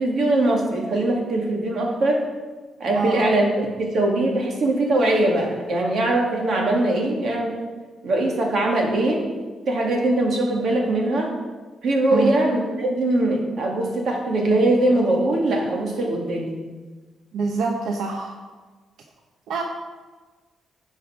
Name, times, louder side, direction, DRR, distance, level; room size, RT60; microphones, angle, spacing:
voice 1, 0.0-2.2 2.8-3.5 3.8-7.5 8.0-9.3 9.7-11.3 11.8-16.5, right 1 dB, 50° right, 0 dB, 2.1 m, -21 dB
voice 2, 2.9-3.2 12.1-12.3 17.3-18.4 19.5-19.6, right 4 dB, 85° right, 2 dB, 0.9 m, -25 dB
15.5 x 5.6 x 4.9 m, 1.4 s
wide cardioid pair, 165°, 0 cm